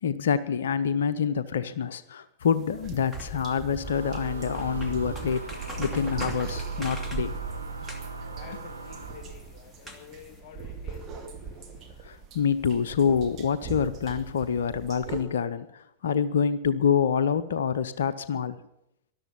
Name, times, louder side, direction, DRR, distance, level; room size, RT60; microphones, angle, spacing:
voice 1, 0.0-5.5 5.8-7.3 12.0-18.6, left 7 dB, 65° left, 14 dB, 0.6 m, -26 dB
sound 1, 2.4-10.4, left 1 dB, ahead, 2.5 m, -44 dB
sound 2, 2.8-15.2, right 5 dB, 30° right, 2.3 m, -41 dB
sound 3, 3.8-9.5, right 4 dB, 80° right, 1.3 m, -37 dB
voice 2, 6.6-12.0, left 7 dB, 40° left, 4 dB, 1.9 m, -51 dB
13.0 x 11.5 x 7.2 m, 0.81 s
figure-of-eight pair, 90°, 0 cm